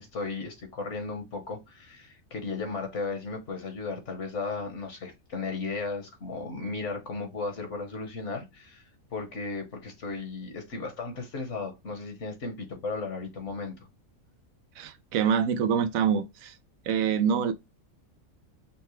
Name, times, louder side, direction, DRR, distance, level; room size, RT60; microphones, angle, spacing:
voice 1, 0.0-13.7, left 3 dB, 60° left, 1.4 m, -35 dB
voice 2, 14.8-16.6 16.9-17.5, right 7 dB, 80° right, 1.0 m, -25 dB
5.8 x 2.1 x 3.1 m
omnidirectional pair, 1.4 m